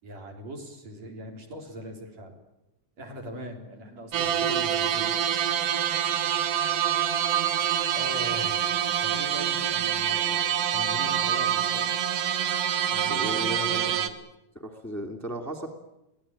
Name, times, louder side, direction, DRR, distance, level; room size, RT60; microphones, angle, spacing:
voice 1, 0.0-2.3 3.0-5.2 7.9-8.6 9.0-11.9 12.9-14.1, equal, 55° right, 2 dB, 4.9 m, -41 dB
sound 1, 4.1-14.1, right 9 dB, 75° right, 2.8 m, -26 dB
voice 2, 13.0-13.9 14.6-15.7, equal, 5° left, 1 dB, 2.2 m, -35 dB
24.5 x 18.0 x 8.9 m, 0.94 s
omnidirectional pair, 3.7 m